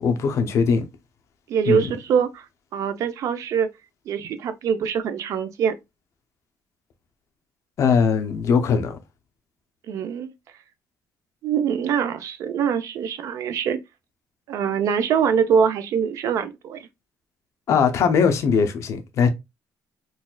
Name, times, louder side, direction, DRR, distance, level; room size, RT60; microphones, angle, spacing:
voice 1, 0.0-0.8 1.7-1.9 7.8-9.0 17.7-19.3, left 6 dB, 55° left, 0.6 m, -20 dB
voice 2, 1.5-2.5 2.7-3.7 4.1-5.7 9.9-10.3 11.4-13.8 14.5-16.9, right 7 dB, 65° right, 0.4 m, -23 dB
4.1 x 2.3 x 2.2 m
cardioid pair, 160°, 6 cm